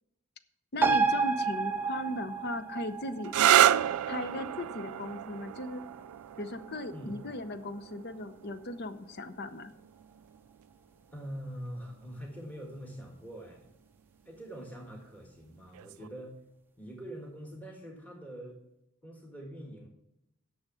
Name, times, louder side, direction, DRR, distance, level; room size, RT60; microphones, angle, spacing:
voice 1, 0.7-3.3 4.1-5.8 6.4-9.7, left 1 dB, 45° left, 12 dB, 0.7 m, -37 dB
sound 1, 0.8-7.8 8.1-8.2, right 4 dB, 10° right, 0.5 m, -32 dB
sound 2, 3.2-10.7 11.7-12.2 15.7-16.1, right 11 dB, 75° right, 0.3 m, -30 dB
voice 2, 6.9-7.5 11.1-13.6 14.2-16.4 16.8-18.6 19.0-19.9, equal, 5° left, -1 dB, 1.7 m, -44 dB
10.0 x 6.4 x 6.2 m, 0.83 s
head